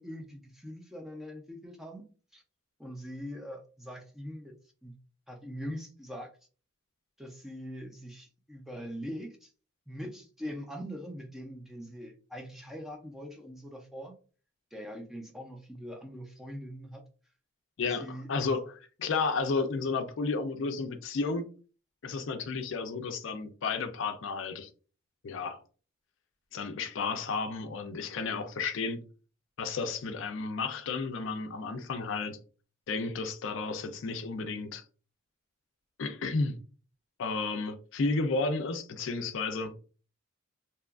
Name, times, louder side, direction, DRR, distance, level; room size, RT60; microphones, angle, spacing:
voice 1, 0.0-2.1 2.3-2.4 2.8-4.6 4.8-5.0 5.3-6.3 7.2-9.5 9.9-14.2 14.7-17.0 17.8-18.3, equal, ahead, 0.4 m, -42 dB
voice 2, 17.8-21.4 22.0-24.7 25.2-25.6 26.5-29.0 29.6-32.4 32.9-34.8 36.0-36.6 37.2-39.7, left 4 dB, 65° left, 0.4 m, -32 dB
2.8 x 2.4 x 2.3 m
head